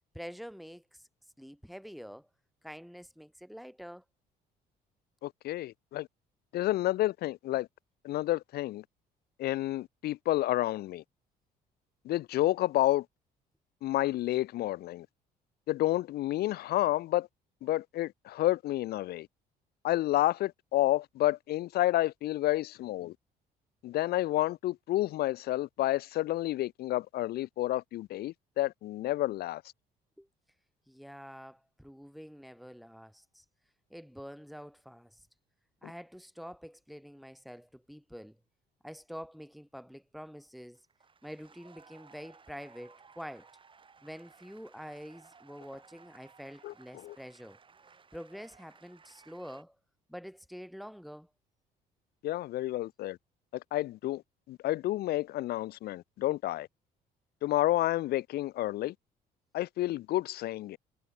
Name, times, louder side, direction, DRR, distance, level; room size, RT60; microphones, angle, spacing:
voice 1, 0.1-1.1 1.4-2.3 2.6-4.0 30.2-30.3 30.9-33.4 33.9-35.2 35.8-38.4 38.8-40.8 41.2-43.6 44.0-47.6 48.1-49.8 50.1-51.3, equal, ahead, 2.2 m, -47 dB
voice 2, 5.2-6.1 6.5-7.7 8.0-8.8 9.4-11.0 12.0-13.1 13.8-15.1 15.7-17.3 17.6-19.3 19.8-23.1 23.8-29.6 46.6-47.2 52.2-53.2 53.5-54.2 54.5-56.7 57.4-58.9 59.5-60.8, left 15 dB, 70° left, 0.7 m, -30 dB
sound 1, 40.7-49.6, right 5 dB, 30° right, 5.3 m, -59 dB
cardioid pair, 110°, 17 cm